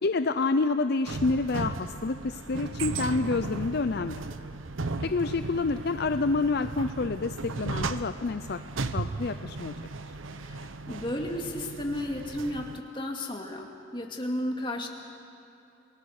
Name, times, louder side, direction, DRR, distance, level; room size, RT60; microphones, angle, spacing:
voice 1, 0.0-4.2 5.0-8.6 8.9-9.7, left 3 dB, 55° left, 9 dB, 0.6 m, -28 dB
sound 1, 1.1-12.8, right 3 dB, 85° right, 0.9 m, -36 dB
voice 2, 10.4-14.9, left 1 dB, 25° left, 1 dB, 2.3 m, -33 dB
28.0 x 19.5 x 6.6 m, 2.9 s
head